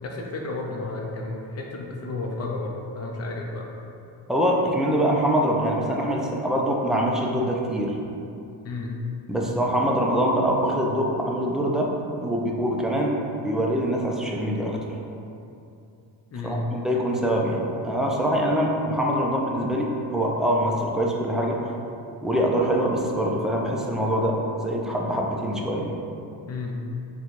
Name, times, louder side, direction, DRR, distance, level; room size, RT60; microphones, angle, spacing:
voice 1, 0.0-3.7 8.6-9.0 16.3-16.7 26.5-26.8, left 2 dB, 35° left, -1 dB, 0.6 m, -32 dB
voice 2, 4.3-8.0 9.3-11.9 12.2-14.8 16.4-21.6 22.2-26.0, equal, ahead, -2 dB, 0.3 m, -24 dB
4.0 x 2.3 x 4.5 m, 2.7 s
cardioid pair, 110°, 43 cm